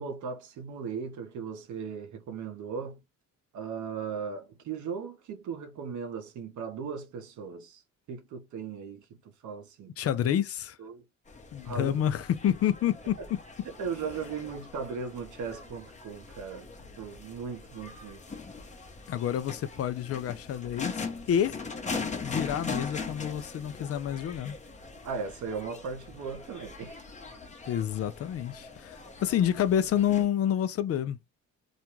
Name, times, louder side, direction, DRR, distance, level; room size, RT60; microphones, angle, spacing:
voice 1, 0.0-3.0 3.5-7.8 8.1-9.0 9.4-9.9 10.8-11.0 11.6-12.0 13.8-16.7 17.0-18.2 25.0-27.0, right 5 dB, 75° right, 0.8 m, -37 dB
voice 2, 10.0-10.8 11.5-13.4 19.1-21.6 22.2-24.6 27.7-31.2, left 10 dB, 50° left, 0.4 m, -28 dB
sound 1, 11.3-30.3, left 4 dB, 25° left, 0.8 m, -41 dB
2.5 x 2.2 x 3.0 m
cardioid pair, 90°, 30 cm